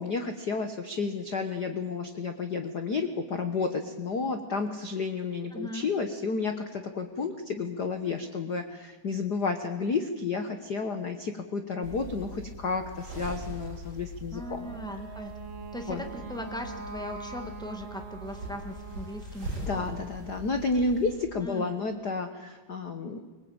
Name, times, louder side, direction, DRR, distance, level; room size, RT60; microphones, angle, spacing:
voice 1, 0.0-14.7 15.9-16.0 19.6-23.2, left 4 dB, 90° left, 7 dB, 0.8 m, -31 dB
voice 2, 5.5-5.9 14.3-15.3 15.7-20.0 21.4-21.8, left 1 dB, 5° left, 5 dB, 0.8 m, -39 dB
sound 1, 11.8-21.1, right 1 dB, 35° right, 8.3 m, -42 dB
Wind instrument woodwind instrument, 14.3-19.3, right 4 dB, 75° right, 3.9 m, -43 dB
24.5 x 21.0 x 8.9 m, 1.3 s
omnidirectional pair, 3.8 m